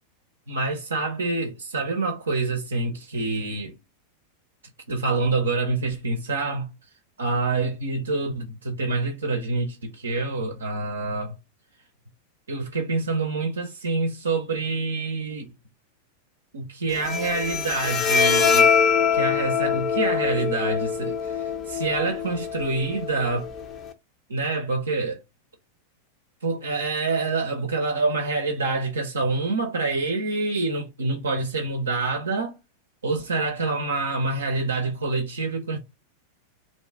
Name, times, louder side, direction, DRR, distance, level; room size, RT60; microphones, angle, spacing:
voice 1, 0.5-3.7 4.9-6.7 7.2-11.3 12.5-15.5 16.5-18.7 19.1-23.5 24.3-25.2 26.4-32.5 33.0-35.8, right 3 dB, 70° right, 0.5 m, -26 dB
Bowed string instrument, 16.9-23.9, left 6 dB, 30° left, 0.5 m, -24 dB
2.6 x 2.3 x 3.3 m
figure-of-eight pair, 90°, 0 cm